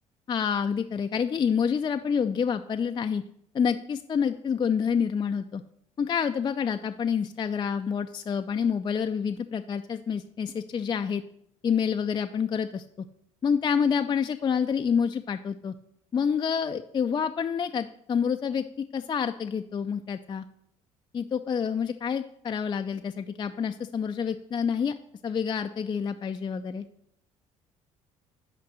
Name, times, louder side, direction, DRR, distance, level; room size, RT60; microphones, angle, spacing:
voice 1, 0.3-3.2 3.5-5.6 6.0-11.2 11.6-13.1 13.4-15.7 16.1-20.4 21.1-24.9 25.2-26.8, left 7 dB, 25° left, 7 dB, 0.4 m, -28 dB
5.8 x 5.1 x 6.2 m, 0.71 s
figure-of-eight pair, 50°, 17 cm